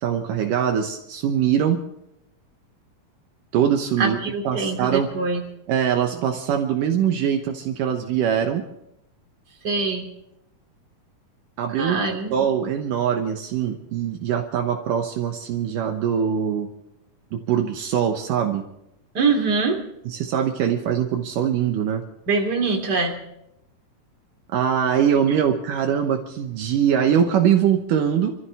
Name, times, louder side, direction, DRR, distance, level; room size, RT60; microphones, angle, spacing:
voice 1, 0.0-1.8 3.5-4.2 4.4-5.1 5.7-8.6 11.6-12.0 12.3-16.7 17.3-18.6 20.1-22.0 24.5-28.3, right 8 dB, 75° right, 4 dB, 2.6 m, -22 dB
voice 2, 4.0-5.4 9.6-10.1 11.8-12.3 19.1-19.8 22.3-23.2, right 4 dB, 30° right, 2 dB, 3.2 m, -23 dB
27.0 x 14.5 x 3.5 m, 0.82 s
omnidirectional pair, 4.0 m